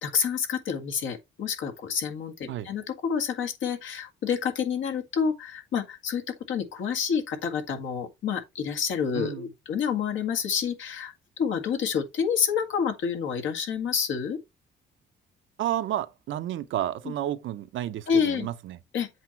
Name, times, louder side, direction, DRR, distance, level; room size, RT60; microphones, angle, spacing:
voice 1, 0.0-14.4 18.1-18.5 18.9-19.1, left 7 dB, 75° left, 1.8 m, -28 dB
voice 2, 9.1-9.5 15.6-18.8, right 12 dB, 75° right, 0.9 m, -31 dB
7.9 x 3.1 x 5.8 m
cardioid pair, 90°, 20 cm